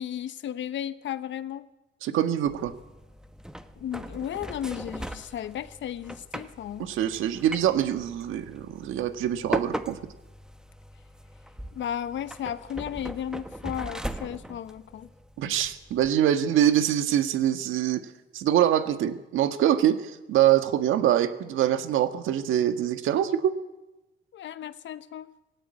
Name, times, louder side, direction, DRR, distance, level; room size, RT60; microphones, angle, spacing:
voice 1, 0.0-1.6 3.8-6.9 11.7-15.1 24.3-25.3, left 10 dB, 70° left, 1.0 m, -34 dB
voice 2, 2.0-2.7 6.8-10.0 15.4-18.0 18.3-23.5, right 11 dB, 85° right, 1.6 m, -24 dB
sound 1, 2.5-16.1, right 1 dB, 5° right, 1.2 m, -39 dB
18.0 x 17.0 x 9.6 m
cardioid pair, 90°, 20 cm